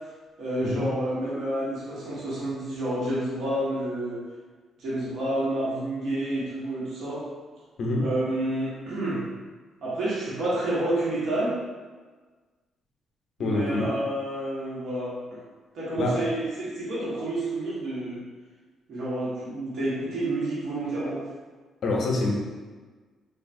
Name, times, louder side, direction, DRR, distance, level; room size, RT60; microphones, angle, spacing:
voice 1, 0.4-4.2 4.8-7.3 8.0-9.2 9.8-11.6 13.4-15.4 15.7-18.2 18.9-21.2, right 1 dB, 70° right, -8 dB, 1.1 m, -29 dB
voice 2, 13.4-13.9 16.0-16.2 21.8-22.3, left 2 dB, 60° left, -1 dB, 0.6 m, -25 dB
3.4 x 2.4 x 2.6 m, 1.4 s
cardioid pair, 90°, 0 cm